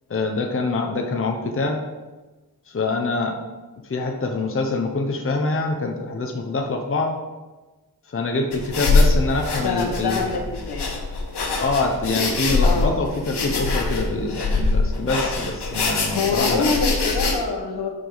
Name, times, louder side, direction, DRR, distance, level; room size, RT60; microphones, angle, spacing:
voice 1, 0.1-1.8 2.7-3.4 3.8-7.2 8.1-10.2 11.6-16.7, left 3 dB, 35° left, 3 dB, 0.8 m, -25 dB
sound 1, 8.5-17.3, left 3 dB, 90° left, 1.5 m, -23 dB
voice 2, 9.6-10.4 10.7-10.9 12.6-12.9 16.0-17.9, left 4 dB, 75° left, 2 dB, 1.4 m, -25 dB
12.0 x 5.0 x 3.9 m, 1.2 s
wide cardioid pair, 140°, 39 cm